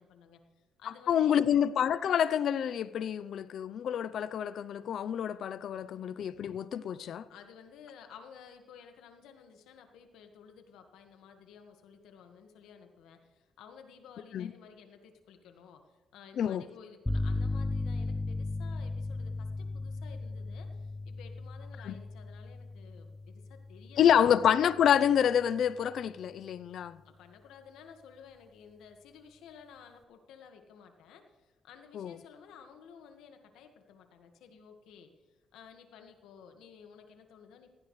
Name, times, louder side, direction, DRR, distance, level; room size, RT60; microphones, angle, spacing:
voice 1, 0.0-1.3 5.7-5.9 7.3-24.2 27.0-37.7, left 7 dB, 90° left, 1.6 m, -54 dB
voice 2, 1.1-7.2 14.3-14.5 16.4-16.6 21.8-21.9 24.0-27.0 31.9-32.1, left 9 dB, 65° left, 0.6 m, -27 dB
sound 1, 17.1-24.8, left 2 dB, 10° left, 0.7 m, -36 dB
16.0 x 15.5 x 3.2 m
cardioid pair, 100°, 0 cm